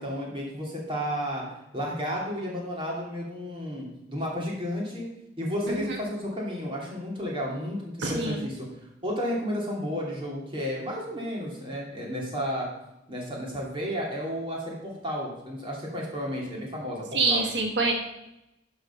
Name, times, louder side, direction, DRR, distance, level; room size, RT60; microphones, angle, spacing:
voice 1, 0.0-1.4 1.7-5.1 5.4-8.7 9.0-12.7 13.1-17.5, equal, 30° right, -3 dB, 2.7 m, -32 dB
voice 2, 5.7-6.0 8.0-8.3 17.1-17.9, right 3 dB, 80° right, 2 dB, 1.3 m, -26 dB
11.5 x 4.7 x 5.7 m, 0.88 s
head